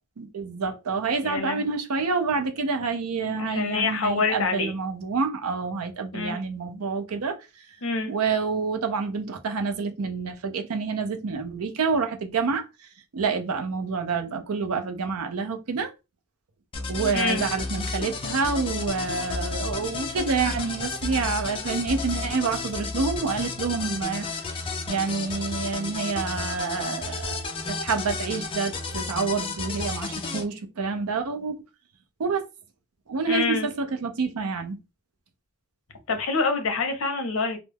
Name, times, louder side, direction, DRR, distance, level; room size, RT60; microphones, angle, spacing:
voice 1, 0.2-7.4 8.1-12.6 13.1-15.9 16.9-24.3 24.9-27.4 27.7-31.5 32.2-32.5 33.1-34.8, right 4 dB, 80° right, 0.5 m, -28 dB
voice 2, 1.2-1.7 3.2-4.7 6.1-6.4 7.8-8.1 17.1-17.4 33.3-33.7 36.1-37.6, left 4 dB, 60° left, 0.6 m, -26 dB
sound 1, 16.7-30.4, left 3 dB, 25° left, 0.3 m, -32 dB
2.2 x 2.0 x 3.2 m
head